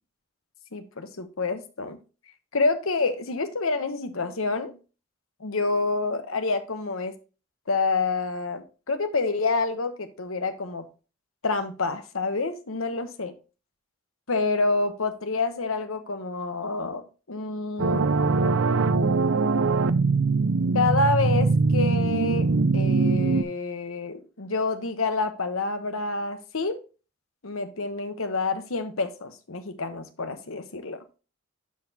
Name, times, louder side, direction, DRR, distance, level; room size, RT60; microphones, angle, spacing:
voice 1, 0.7-2.0 2.5-4.8 5.4-7.1 7.7-10.8 11.4-13.3 14.3-18.2 20.7-26.8 27.4-31.0, left 3 dB, 75° left, 1.0 m, -28 dB
sound 1, 17.8-23.4, right 4 dB, 65° right, 0.5 m, -22 dB
12.0 x 4.2 x 2.8 m
head